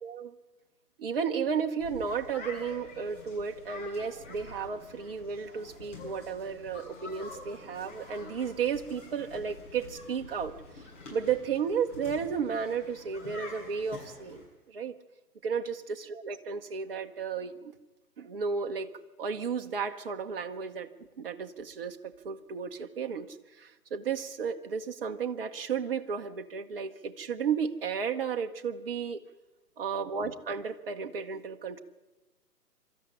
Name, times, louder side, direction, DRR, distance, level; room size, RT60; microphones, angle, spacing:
voice 1, 0.0-0.3 1.0-10.8 11.1-14.9 15.4-17.7 18.2-18.9 19.2-20.9 21.2-29.2 29.8-31.8, right 6 dB, 35° right, 7 dB, 1.1 m, -33 dB
sound 1, 1.8-14.4, left 3 dB, 45° left, 7.2 m, -47 dB
23.0 x 13.5 x 9.8 m, 1.2 s
figure-of-eight pair, 140°, 48 cm